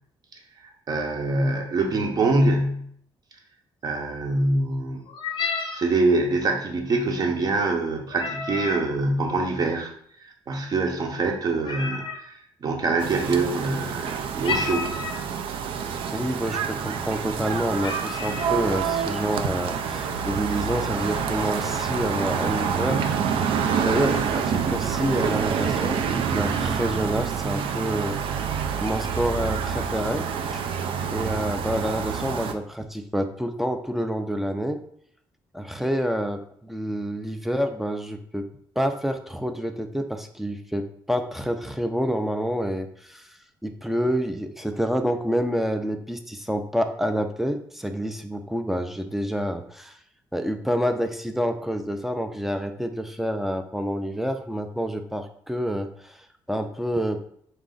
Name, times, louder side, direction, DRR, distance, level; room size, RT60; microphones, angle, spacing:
voice 1, 0.9-2.9 3.8-5.0 5.4-9.9 10.5-14.9, right 2 dB, 45° right, 4 dB, 0.7 m, -24 dB
sound 1, 5.1-5.9 8.1-8.9 11.6-12.2 14.4-15.3 16.1-16.2 16.5-16.8 17.4-17.5 17.8-18.6, left 5 dB, 60° left, 0.5 m, -31 dB
sound 2, 13.0-32.5, right 7 dB, 70° right, 0.4 m, -27 dB
voice 2, 16.1-23.0 23.7-28.2 28.8-30.2 30.5-30.7 31.1-34.8 35.5-38.4 38.8-50.0 50.3-57.3, equal, 5° right, 6 dB, 0.4 m, -28 dB
4.1 x 2.4 x 3.8 m, 0.65 s
cardioid pair, 105°, 9 cm